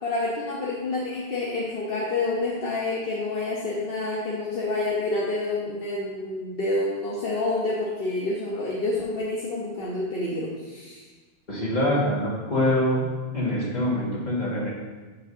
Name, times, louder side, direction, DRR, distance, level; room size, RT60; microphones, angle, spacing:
voice 1, 0.0-11.0, left 2 dB, 65° left, -5 dB, 1.1 m, -28 dB
voice 2, 11.5-13.1 13.3-14.7, left 1 dB, 45° left, -6 dB, 2.0 m, -24 dB
8.4 x 6.5 x 2.7 m, 1.3 s
omnidirectional pair, 1.0 m